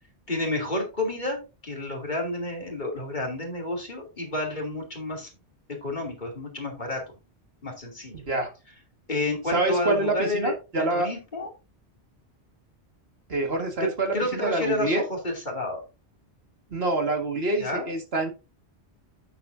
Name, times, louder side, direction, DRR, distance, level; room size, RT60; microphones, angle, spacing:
voice 1, 0.3-5.3 5.7-7.0 7.6-8.3 9.1-11.5 13.8-15.8 17.6-17.9, left 2 dB, 45° left, 0 dB, 2.9 m, -30 dB
voice 2, 9.5-11.1 13.3-15.0 16.7-18.3, right 2 dB, 65° right, 4 dB, 2.1 m, -26 dB
9.4 x 8.2 x 2.6 m, 0.29 s
omnidirectional pair, 1.1 m